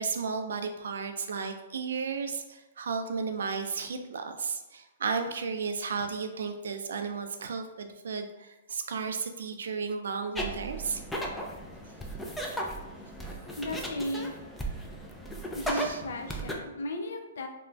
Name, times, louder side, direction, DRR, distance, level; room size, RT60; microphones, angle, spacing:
voice 1, 0.0-11.3 13.2-13.6 15.7-16.0, right 5 dB, 75° right, 6 dB, 0.3 m, -34 dB
sound 1, 10.3-16.5, right 1 dB, 5° left, 0.3 m, -36 dB
voice 2, 13.6-14.3 15.5-17.5, left 1 dB, 80° left, 5 dB, 0.4 m, -35 dB
2.4 x 2.1 x 3.2 m, 1.0 s
hypercardioid pair, 140°, 0 cm